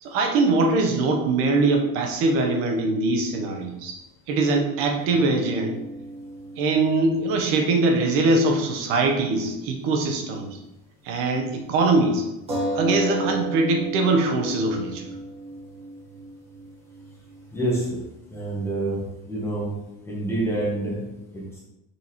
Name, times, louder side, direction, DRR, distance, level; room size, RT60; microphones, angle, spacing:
voice 1, 0.0-4.0 4.3-5.8 6.6-10.5 11.0-12.2 12.7-15.1, right 3 dB, 45° right, 2 dB, 1.1 m, -22 dB
sound 1, 5.0-8.9 9.2-9.3 12.5-17.7, right 1 dB, 20° right, 1.5 m, -34 dB
voice 2, 17.5-18.0 18.3-19.0 19.3-19.8 20.1-21.6, right 1 dB, 10° left, -5 dB, 1.1 m, -27 dB
6.1 x 5.3 x 3.1 m, 0.95 s
cardioid pair, 180°, 31 cm